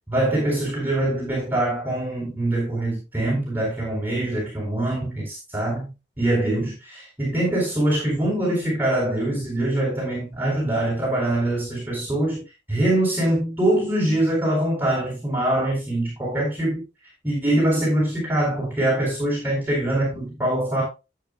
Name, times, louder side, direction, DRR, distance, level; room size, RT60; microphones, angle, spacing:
voice 1, 0.1-12.4 12.7-16.8 17.2-20.8, right 1 dB, 10° right, 4.0 m, -23 dB
12.5 x 8.2 x 2.3 m
head